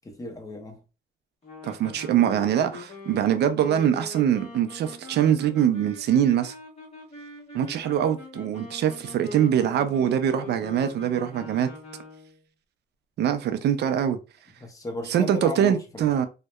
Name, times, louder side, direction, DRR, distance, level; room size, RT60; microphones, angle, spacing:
voice 1, 0.0-0.8 14.6-16.1, left 1 dB, 20° left, 0.7 m, -35 dB
sound 1, 1.4-12.4, left 3 dB, 35° left, 1.2 m, -42 dB
voice 2, 1.6-6.5 7.5-11.7 13.2-14.2 15.1-16.3, right 9 dB, 65° right, 0.4 m, -23 dB
2.7 x 2.1 x 2.2 m
cardioid pair, 120°, 19 cm